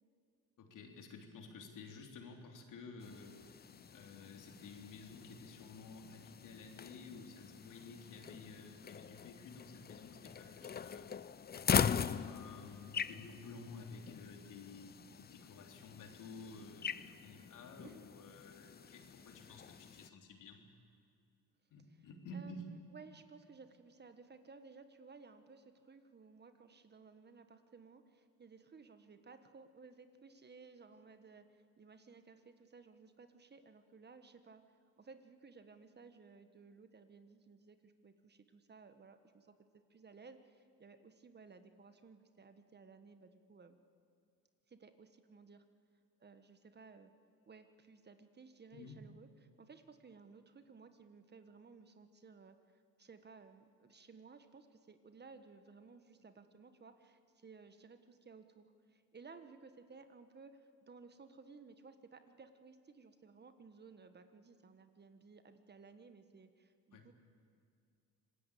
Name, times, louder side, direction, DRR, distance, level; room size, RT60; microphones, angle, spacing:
voice 1, 0.6-3.6 3.9-11.1 12.2-20.6 21.7-22.6 48.7-49.0 66.9-67.1, left 3 dB, 65° left, 3 dB, 3.6 m, -52 dB
sound 1, 3.0-20.1, left 7 dB, 30° left, 0.6 m, -42 dB
voice 2, 22.3-34.6 35.0-39.6 39.9-43.8 44.7-45.6 46.2-47.1 47.5-49.3 49.6-67.1, right 4 dB, 30° right, 9 dB, 1.5 m, -58 dB
26.0 x 19.0 x 8.5 m, 2.3 s
cardioid pair, 100°, 34 cm